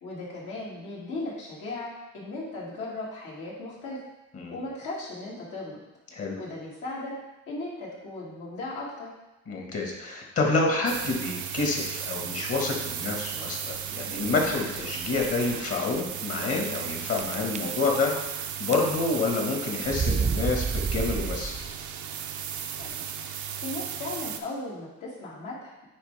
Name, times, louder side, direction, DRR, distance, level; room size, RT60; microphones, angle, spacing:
voice 1, 0.0-4.0 4.5-5.8 6.4-7.1 7.5-9.1 22.8-22.9 23.6-25.8, left 2 dB, 80° left, -6 dB, 2.3 m, -37 dB
voice 2, 9.5-21.6, left 3 dB, 50° left, 0 dB, 1.6 m, -28 dB
sound 1, 10.9-24.4, right 9 dB, 75° right, 0.6 m, -35 dB
sound 2, 14.1-14.5 15.2-15.3 15.5-15.6 16.5-16.9 17.2-18.3 18.6-19.2 19.9-21.8, right 5 dB, 25° right, 0.4 m, -30 dB
9.5 x 3.5 x 3.4 m, 1.0 s
cardioid pair, 90°, 30 cm